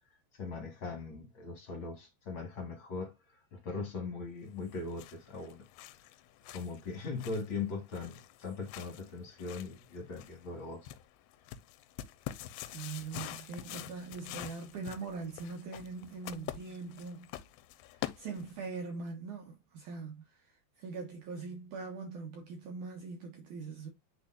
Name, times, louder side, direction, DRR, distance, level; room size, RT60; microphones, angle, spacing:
voice 1, 0.4-5.6 6.5-10.9, left 4 dB, 45° left, 1.6 m, -40 dB
sound 1, 4.6-18.8, left 13 dB, 85° left, 2.6 m, -47 dB
voice 2, 12.7-17.3 18.0-23.9, right 4 dB, 65° right, 2.1 m, -42 dB
10.0 x 4.1 x 2.4 m
omnidirectional pair, 4.8 m